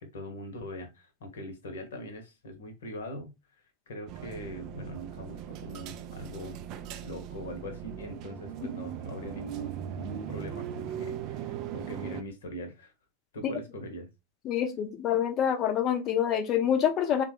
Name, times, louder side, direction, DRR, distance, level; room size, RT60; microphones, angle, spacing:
voice 1, 0.0-6.6 7.0-12.9 13.3-14.1, left 1 dB, 60° left, 0.9 m, -42 dB
sound 1, 4.1-12.2, right 9 dB, 40° right, 0.3 m, -39 dB
voice 2, 14.4-17.2, left 9 dB, 35° left, 0.6 m, -26 dB
3.6 x 2.2 x 3.1 m
figure-of-eight pair, 90°, 0 cm